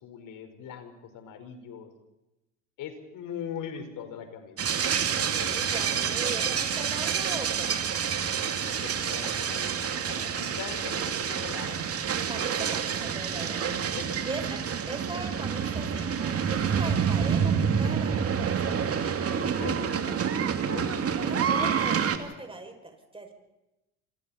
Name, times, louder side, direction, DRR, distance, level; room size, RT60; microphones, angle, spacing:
voice 1, 0.0-1.9 2.8-4.7 5.2-5.5 8.1-9.7 10.1-11.9 13.4-14.3 19.2-22.0, left 8 dB, 55° left, 7 dB, 5.0 m, -42 dB
sound 1, 4.6-22.2, right 7 dB, 40° right, 2.7 m, -28 dB
voice 2, 5.3-7.9 10.1-10.6 12.3-13.7 14.2-14.6 14.9-18.8 21.2-23.3, right 2 dB, 15° right, 4 dB, 6.8 m, -40 dB
28.0 x 27.5 x 4.4 m, 0.95 s
hypercardioid pair, 65°, 38 cm